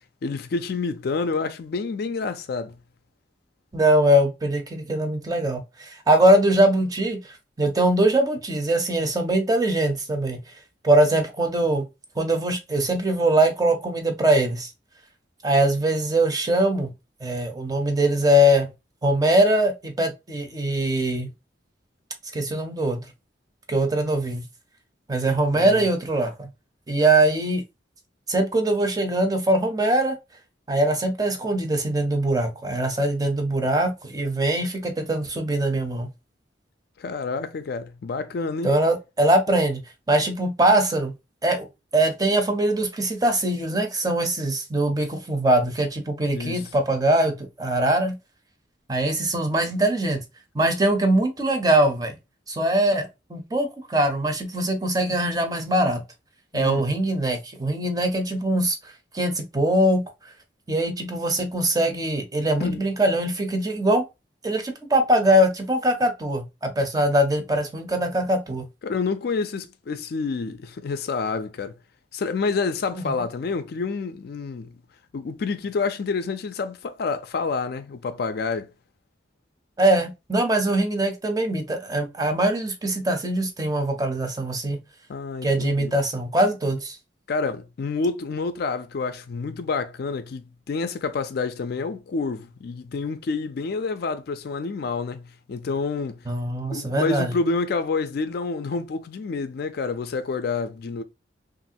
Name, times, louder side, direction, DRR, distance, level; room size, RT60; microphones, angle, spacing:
voice 1, 0.2-2.8 25.5-25.9 37.0-38.7 46.3-46.7 56.5-56.8 62.6-62.8 68.8-71.8 72.1-74.8 75.1-78.7 85.1-85.9 87.3-96.2 96.7-101.0, left 4 dB, 60° left, 0.4 m, -28 dB
voice 2, 3.7-10.4 10.8-11.8 12.2-14.7 15.4-16.9 17.2-18.7 19.0-21.3 22.3-23.0 23.7-24.4 25.1-26.5 26.9-27.6 28.3-30.1 30.7-36.1 38.6-39.8 40.1-41.1 41.4-41.7 41.9-48.1 48.9-50.2 50.5-52.1 52.5-56.0 56.5-60.0 60.7-64.0 64.4-68.7 72.9-73.2 79.8-84.8 85.4-87.0 96.3-97.3, right 1 dB, 20° right, 0.6 m, -22 dB
3.0 x 2.5 x 2.7 m
head